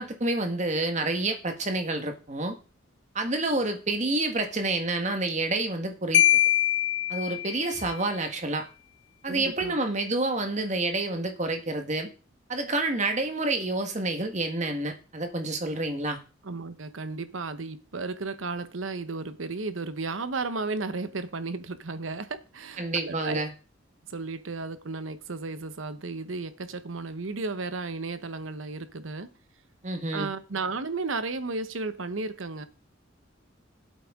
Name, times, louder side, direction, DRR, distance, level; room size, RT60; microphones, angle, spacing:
voice 1, 0.0-2.6 3.1-6.2 7.1-8.6 9.2-12.1 12.5-16.2 22.8-23.5 29.8-30.3, right 2 dB, 35° right, 1.4 m, -28 dB
Marimba xylophone, 6.1-7.9, left 13 dB, 70° left, 0.4 m, -23 dB
voice 2, 9.3-9.8 16.4-23.4 24.1-29.3 30.1-32.7, right 3 dB, 85° right, 1.0 m, -34 dB
15.0 x 8.4 x 3.6 m
head